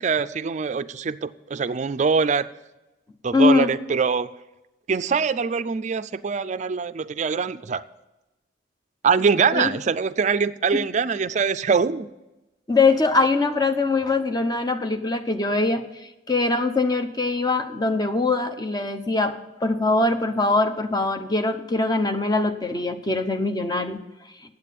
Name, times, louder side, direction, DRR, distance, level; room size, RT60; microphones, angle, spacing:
voice 1, 0.0-2.5 3.2-4.3 4.9-7.8 9.0-12.1, right 5 dB, 40° right, 14 dB, 0.4 m, -23 dB
voice 2, 3.3-3.7 9.5-9.7 10.7-10.8 12.7-15.8 16.3-24.0, left 3 dB, 20° left, 7 dB, 0.8 m, -22 dB
8.9 x 8.1 x 8.4 m, 0.99 s
head